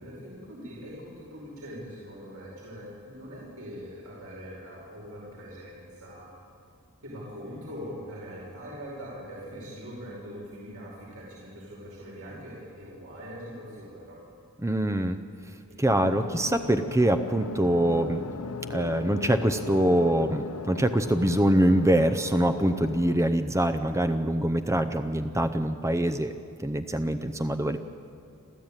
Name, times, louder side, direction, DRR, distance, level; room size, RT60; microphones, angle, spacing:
voice 1, 0.0-6.3 7.0-14.2 15.7-15.8, equal, 70° right, -5 dB, 5.4 m, -42 dB
voice 2, 14.6-15.2 15.8-18.3 18.7-26.3 26.6-27.8, right 1 dB, 15° right, 8 dB, 0.6 m, -24 dB
sound 1, 15.9-23.2, left 4 dB, 75° left, 0.8 m, -37 dB
28.5 x 13.5 x 9.0 m, 2.4 s
head